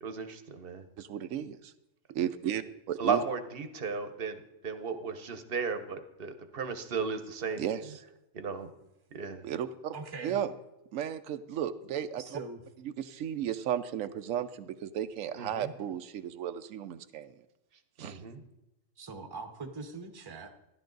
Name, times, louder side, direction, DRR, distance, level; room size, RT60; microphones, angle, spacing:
voice 1, 0.0-0.8 3.0-7.7 8.3-8.7 9.1-9.4 15.3-15.7 18.0-18.4, right 5 dB, 50° right, 9 dB, 1.1 m, -35 dB
voice 2, 1.0-1.7 2.1-3.2 7.6-8.0 9.4-9.9 10.2-10.5 10.9-12.4 13.0-17.3 18.0-18.2, right 9 dB, 85° right, 10 dB, 1.0 m, -34 dB
voice 3, 9.9-10.4 12.2-12.6 19.0-20.5, right 4 dB, 20° right, 6 dB, 0.9 m, -42 dB
12.5 x 11.5 x 3.9 m, 0.93 s
omnidirectional pair, 1.3 m